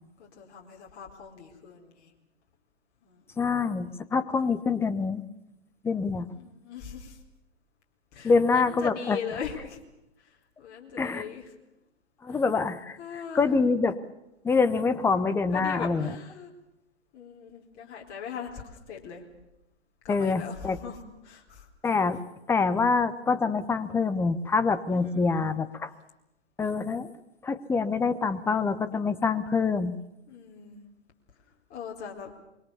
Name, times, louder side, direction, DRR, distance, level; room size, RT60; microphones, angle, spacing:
voice 1, 0.2-2.1 3.0-3.4 6.3-7.2 8.1-9.8 10.2-11.5 12.3-12.4 13.0-13.5 14.7-14.8 15.5-16.5 17.1-19.2 20.0-21.7 24.9-25.5 30.3-30.8 31.7-32.3, left 7 dB, 30° left, 0 dB, 4.2 m, -40 dB
voice 2, 3.4-5.3 5.8-6.3 8.2-9.2 11.0-11.2 12.2-13.0 13.3-14.0 14.4-16.1 20.1-20.8 21.8-22.2 22.5-25.9 26.6-27.1 27.4-30.0, left 4 dB, 5° left, 11 dB, 1.0 m, -25 dB
25.5 x 23.0 x 7.0 m, 0.88 s
figure-of-eight pair, 120°, 33 cm